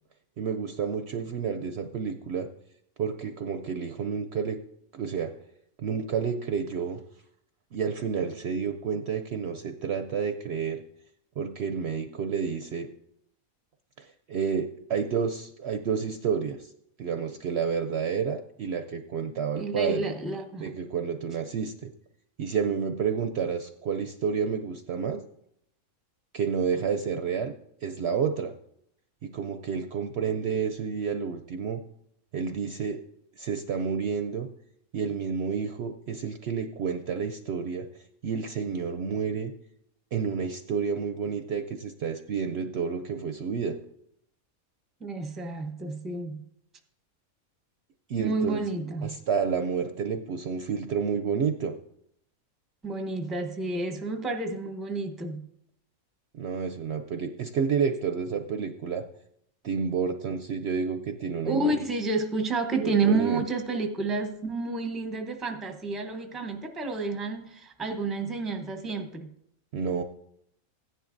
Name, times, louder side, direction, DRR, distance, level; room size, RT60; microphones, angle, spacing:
voice 1, 0.4-2.5 3.0-4.6 4.9-5.3 5.8-7.0 7.7-10.8 11.4-12.9 14.0-16.7 17.0-20.1 20.6-21.9 22.4-25.2 26.3-27.5 27.8-28.5 29.2-31.8 32.3-33.0 33.4-34.5 34.9-37.9 38.2-39.5 40.1-43.8 48.1-48.6 49.0-51.7 56.3-59.0 59.6-61.7 62.8-63.4 69.7-70.0, right 6 dB, 65° right, 0.7 m, -30 dB
voice 2, 19.5-20.7 45.0-46.4 48.2-49.2 52.8-55.5 61.4-69.3, right 3 dB, ahead, 0.6 m, -30 dB
16.0 x 10.0 x 2.6 m
omnidirectional pair, 1.5 m